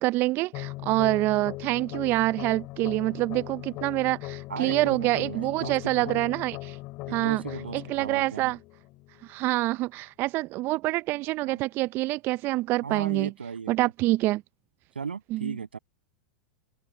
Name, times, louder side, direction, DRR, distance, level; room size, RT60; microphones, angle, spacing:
voice 1, 0.0-6.8 7.1-7.4 7.7-8.6 9.2-13.3 13.7-14.4 15.3-15.5, right 18 dB, 40° right, 0.6 m, -26 dB
sound 1, 0.5-9.5, left 21 dB, 45° left, 2.6 m, -39 dB
voice 2, 4.5-6.2 7.1-8.5 11.5-11.6 12.8-13.9 14.9-15.8, right 6 dB, 85° right, 7.5 m, -36 dB
open air
hypercardioid pair, 95°, 5 cm